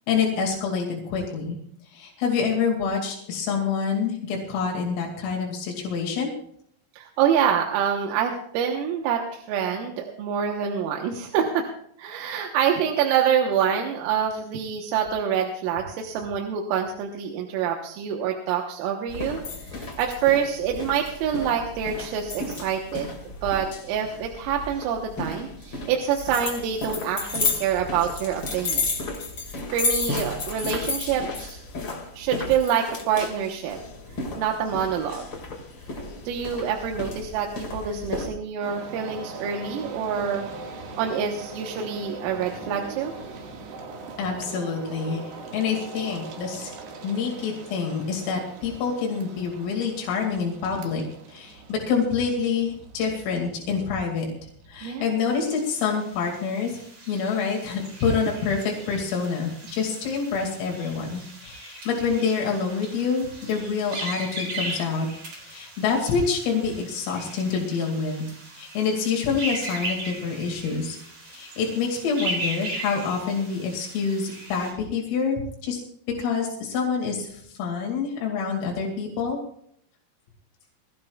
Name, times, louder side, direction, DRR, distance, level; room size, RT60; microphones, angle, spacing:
voice 1, 0.1-1.6 1.9-6.3 44.2-46.7 47.0-54.3 54.7-65.1 65.4-68.2 68.5-71.0 71.2-75.8 76.2-79.4, left 5 dB, 80° left, 0 dB, 5.0 m, -27 dB
voice 2, 6.9-11.7 12.0-23.1 23.4-28.9 29.7-31.6 32.2-33.8 34.4-35.3 36.0-40.5 41.0-43.1 54.8-55.1, right 8 dB, 85° right, 2 dB, 3.8 m, -26 dB
sound 1, 19.1-38.3, left 3 dB, 65° left, 1.1 m, -32 dB
sound 2, 38.6-55.4, right 3 dB, 60° right, 3.3 m, -41 dB
sound 3, 55.2-74.7, right 2 dB, 35° right, 4.4 m, -38 dB
22.5 x 16.0 x 2.4 m, 0.68 s
omnidirectional pair, 5.9 m